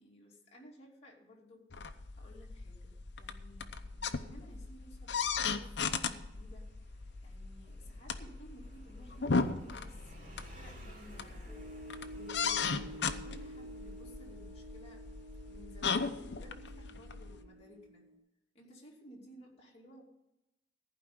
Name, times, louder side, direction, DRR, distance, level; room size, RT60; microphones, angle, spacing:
voice 1, 0.0-15.1 15.5-18.0 18.5-20.0, equal, 35° left, -3 dB, 2.6 m, -56 dB
sound 1, 1.7-17.4, left 5 dB, 70° left, 0.8 m, -37 dB
Motorcycle, 3.5-17.8, right 1 dB, 40° right, 3.5 m, -60 dB
sound 2, 11.5-18.2, equal, ahead, 3.7 m, -50 dB
15.0 x 5.0 x 9.5 m, 0.92 s
head